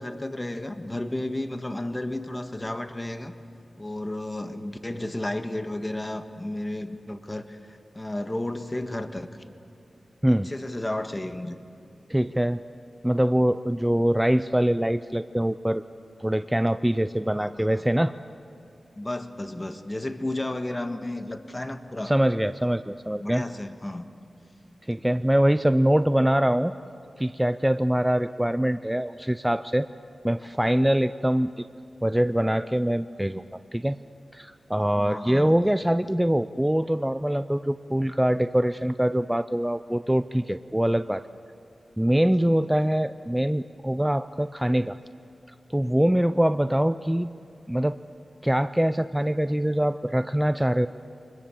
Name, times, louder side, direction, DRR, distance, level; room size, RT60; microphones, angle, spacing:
voice 1, 0.0-3.3 3.8-9.3 10.4-11.6 17.3-17.8 19.0-22.1 23.2-24.0 34.9-35.6, left 1 dB, 25° left, 8 dB, 1.5 m, -33 dB
voice 2, 12.1-12.6 13.0-15.8 16.2-18.1 22.0-23.4 24.9-26.7 27.2-29.9 30.2-31.7 32.0-33.4 33.7-34.0 34.3-41.2 42.0-45.0 45.7-47.3 47.7-48.0 48.4-50.9, equal, 10° right, 12 dB, 0.5 m, -23 dB
25.0 x 21.0 x 7.1 m, 2.7 s
cardioid pair, 50°, 0 cm